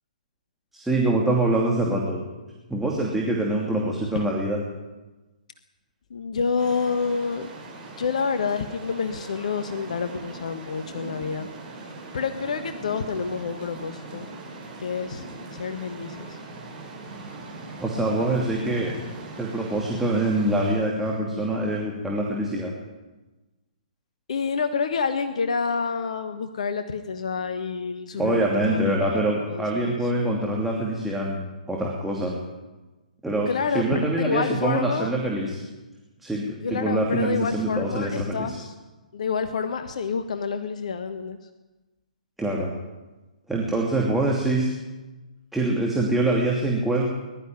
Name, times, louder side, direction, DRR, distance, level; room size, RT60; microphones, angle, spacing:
voice 1, 0.7-2.2 2.7-4.6 17.8-19.0 19.4-22.7 28.2-32.3 33.2-33.5 33.7-35.6 36.2-38.6 42.4-42.7 43.5-44.7 45.5-47.1, right 1 dB, 5° right, -3 dB, 2.9 m, -24 dB
voice 2, 6.1-7.5 8.0-11.5 12.1-14.3 14.8-15.2 15.5-16.4 24.3-30.1 33.5-35.1 36.6-38.7 39.1-41.4, left 5 dB, 55° left, 9 dB, 1.3 m, -28 dB
sound 1, 6.6-20.8, right 2 dB, 20° right, 5.2 m, -40 dB
21.0 x 12.5 x 9.7 m, 1.2 s
figure-of-eight pair, 125°, 4 cm